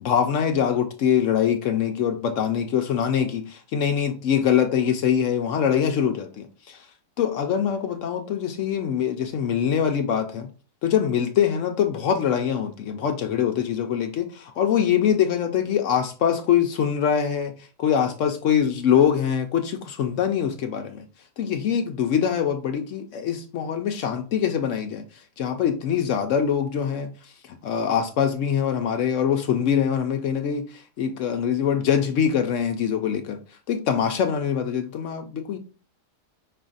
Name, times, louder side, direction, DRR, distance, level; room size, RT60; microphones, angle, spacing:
voice 1, 0.0-6.9 7.2-10.5 10.8-21.1 21.4-33.4 33.7-35.6, left 8 dB, 75° left, 0.7 m, -23 dB
5.5 x 2.4 x 3.8 m
omnidirectional pair, 1.8 m